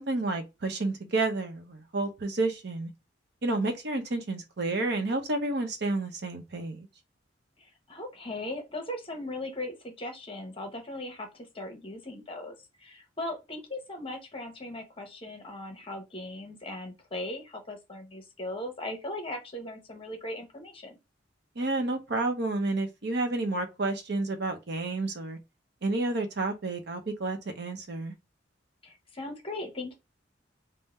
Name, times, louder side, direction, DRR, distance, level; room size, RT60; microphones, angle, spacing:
voice 1, 0.0-2.9 3.4-6.9 21.6-25.4 25.8-28.1, right 2 dB, 60° right, 0.7 m, -30 dB
voice 2, 7.6-21.0 28.8-29.9, left 1 dB, 30° left, 0.9 m, -38 dB
3.6 x 2.1 x 4.1 m
head